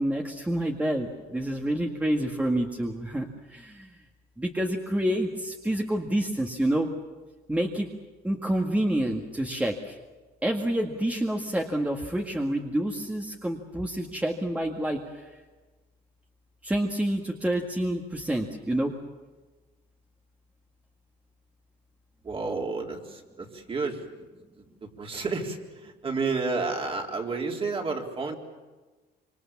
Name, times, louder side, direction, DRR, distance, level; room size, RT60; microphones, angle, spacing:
voice 1, 0.0-4.0 4.4-6.9 7.5-7.9 8.2-10.0 10.4-15.3 16.6-19.0, right 1 dB, 10° right, 2 dB, 1.9 m, -28 dB
voice 2, 22.2-24.0 25.0-28.4, right 4 dB, 35° right, 1 dB, 3.8 m, -31 dB
26.0 x 25.0 x 7.4 m, 1.3 s
cardioid pair, 110°, 17 cm